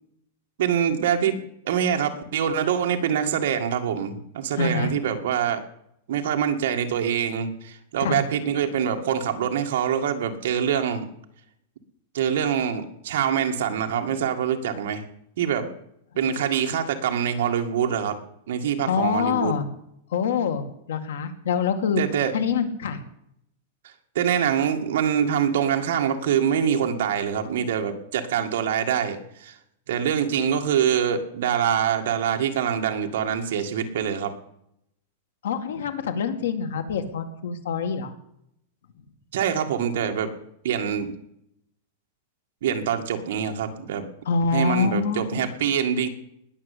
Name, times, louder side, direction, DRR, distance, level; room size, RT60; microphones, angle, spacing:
voice 1, 0.6-5.6 6.1-11.1 12.1-15.0 15.4-15.7 16.1-18.2 18.5-19.6 22.0-22.3 24.2-29.6 29.9-34.3 39.3-40.3 40.6-41.1 42.6-44.1 44.5-46.1, right 8 dB, 60° right, 4 dB, 2.0 m, -25 dB
voice 2, 4.6-4.9 8.0-8.2 18.9-19.7 20.1-22.0 22.3-23.0 35.4-38.1 44.3-45.5, left 6 dB, 85° left, 8 dB, 2.2 m, -25 dB
20.0 x 6.8 x 8.5 m, 0.76 s
supercardioid pair, 175°, 0 cm